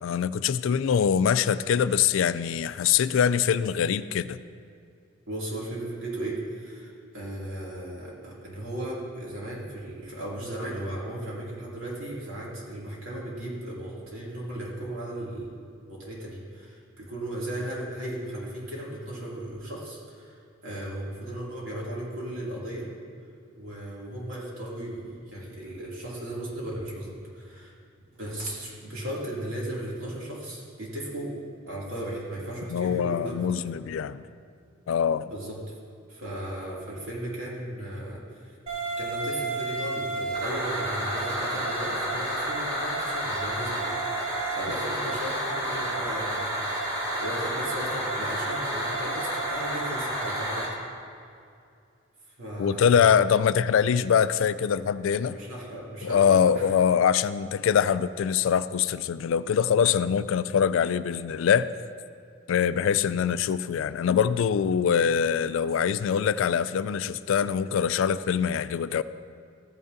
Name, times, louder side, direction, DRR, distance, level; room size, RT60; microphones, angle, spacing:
voice 1, 0.0-4.4 32.7-34.3 34.9-35.3 52.6-55.4 56.0-61.7 62.5-69.0, left 7 dB, 75° left, 15 dB, 0.3 m, -23 dB
voice 2, 5.3-20.4 20.6-22.9 23.6-27.7 28.2-31.3 31.7-33.4 35.3-35.6 36.1-38.6 39.0-46.5 47.2-50.6 52.4-53.1 55.2-56.7, right 1 dB, 85° right, -5 dB, 2.6 m, -36 dB
sound 1, 38.7-50.7, right 1 dB, 30° right, 2.0 m, -30 dB
14.0 x 9.2 x 2.7 m, 2.4 s
head